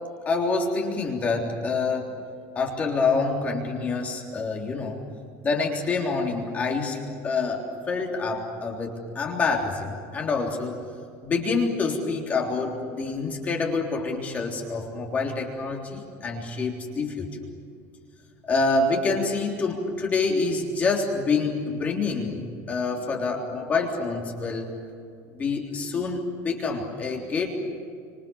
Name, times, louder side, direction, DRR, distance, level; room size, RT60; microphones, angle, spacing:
voice 1, 0.3-2.1 2.6-5.0 5.4-10.8 11.2-17.4 18.4-24.7 25.3-27.5, left 4 dB, 20° left, 0 dB, 3.5 m, -27 dB
29.5 x 26.5 x 7.2 m, 2.4 s
cardioid pair, 180°, 8 cm